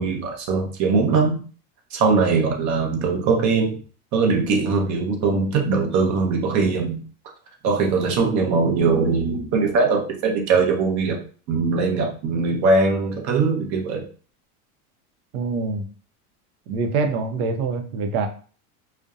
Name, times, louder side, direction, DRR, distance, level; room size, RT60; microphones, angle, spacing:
voice 1, 0.0-1.4 1.9-3.8 4.1-7.0 7.6-11.2 11.5-14.1, right 4 dB, 40° right, 2 dB, 0.7 m, -21 dB
voice 2, 15.3-15.9 16.7-18.3, right 4 dB, 80° right, 6 dB, 0.6 m, -25 dB
2.6 x 2.1 x 2.3 m, 0.40 s
supercardioid pair, 130°, 44 cm